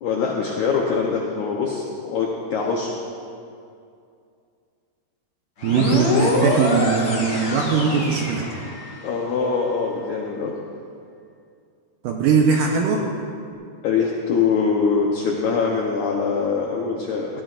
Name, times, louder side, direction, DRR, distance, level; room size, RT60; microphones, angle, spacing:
voice 1, 0.0-2.9 9.0-10.5 13.8-17.4, left 5 dB, 80° left, -1 dB, 1.7 m, -23 dB
sound 1, 5.6-9.1, left 2 dB, 40° left, 1.8 m, -24 dB
voice 2, 5.6-8.5 12.0-13.1, right 5 dB, 75° right, 0 dB, 2.1 m, -20 dB
19.0 x 14.0 x 2.5 m, 2.4 s
omnidirectional pair, 4.6 m